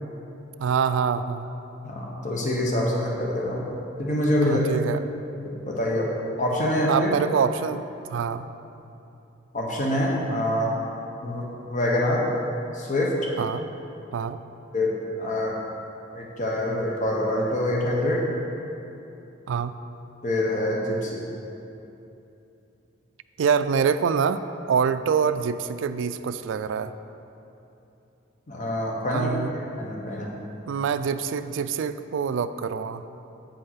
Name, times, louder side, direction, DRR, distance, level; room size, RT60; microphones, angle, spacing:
voice 1, 0.6-1.5 4.4-5.0 6.9-8.5 13.4-13.7 14.1-14.4 19.5-19.8 23.4-26.9 29.1-29.5 30.7-33.0, right 6 dB, 70° right, 12 dB, 0.3 m, -25 dB
voice 2, 1.8-3.6 4.0-4.6 5.4-6.1 6.4-7.1 9.5-10.7 11.2-12.2 12.7-13.1 14.7-14.9 15.2-15.6 16.1-18.2 20.2-21.2 28.5-30.3, left 1 dB, 40° left, -2 dB, 1.0 m, -25 dB
8.7 x 5.4 x 5.7 m, 2.8 s
head